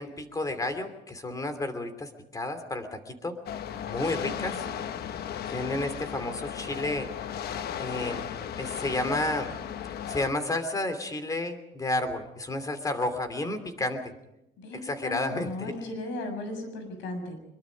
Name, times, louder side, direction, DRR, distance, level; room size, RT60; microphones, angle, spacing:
voice 1, 0.0-3.3 3.9-4.7 5.5-7.1 7.8-8.2 8.6-9.5 10.1-14.1 14.7-15.7, left 2 dB, 20° left, 9 dB, 2.9 m, -31 dB
sound 1, 3.5-10.3, left 9 dB, 55° left, 1.1 m, -36 dB
voice 2, 4.2-4.7 14.6-17.4, left 2 dB, 90° left, 6 dB, 7.1 m, -36 dB
24.0 x 22.5 x 5.2 m, 0.85 s
cardioid pair, 135°, 19 cm